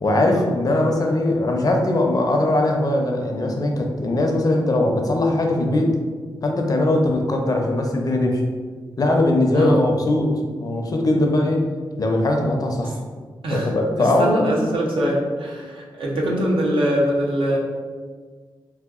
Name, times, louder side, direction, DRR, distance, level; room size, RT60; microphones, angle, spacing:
voice 1, 0.0-6.0 6.4-8.4 9.0-11.6 12.0-13.0 13.5-14.5, left 1 dB, 45° left, 2 dB, 0.5 m, -20 dB
voice 2, 9.5-9.8 13.4-17.6, equal, 85° right, -3 dB, 0.7 m, -23 dB
3.3 x 2.7 x 2.4 m, 1.5 s
cardioid pair, 65°, 9 cm